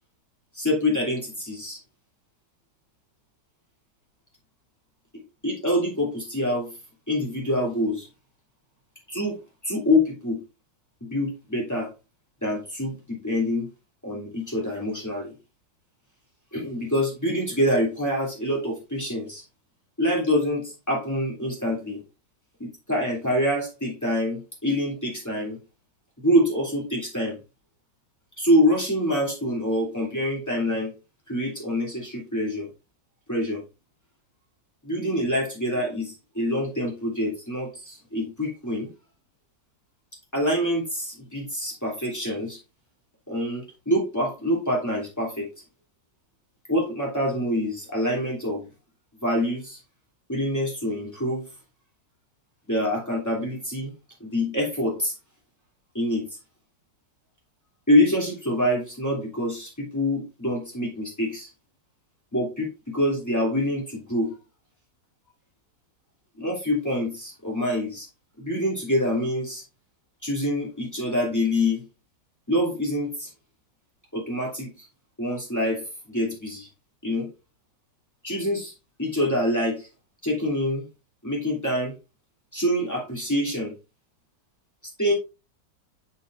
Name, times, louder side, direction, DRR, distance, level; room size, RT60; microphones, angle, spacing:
voice 1, 0.5-1.8 5.4-6.7 7.1-8.1 9.1-10.4 11.0-11.9 12.4-13.7 14.0-15.3 16.5-19.4 20.0-22.0 22.6-25.6 26.2-27.4 28.4-30.9 31.3-32.7 33.3-33.6 34.8-38.9 40.3-42.6 43.3-45.5 46.7-48.7 49.2-49.8 50.3-51.4 52.7-53.9 54.2-55.1 55.9-56.3 57.9-61.5 62.3-64.3 66.4-68.1 68.4-69.6 70.2-71.9 72.5-73.3 74.1-74.9 75.2-76.7 77.0-77.3 78.2-78.7 79.0-79.9 80.2-80.8 81.2-81.9 82.5-83.7 85.0-85.1, left 1 dB, 10° left, -4 dB, 2.8 m, -26 dB
6.9 x 6.2 x 2.5 m, 0.28 s
omnidirectional pair, 1.9 m